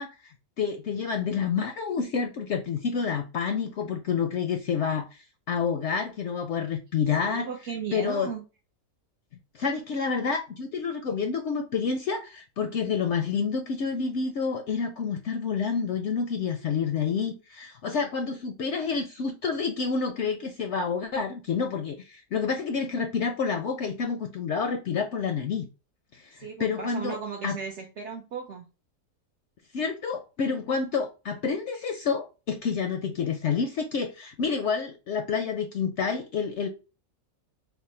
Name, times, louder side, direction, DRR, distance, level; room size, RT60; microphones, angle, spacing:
voice 1, 0.0-7.5 7.9-8.3 9.5-25.7 26.1-27.2 27.4-27.6 29.7-36.7, left 5 dB, 65° left, 0.7 m, -29 dB
voice 2, 7.2-8.4 26.4-28.6, right 6 dB, 60° right, 0.8 m, -36 dB
3.3 x 2.1 x 4.2 m
omnidirectional pair, 1.5 m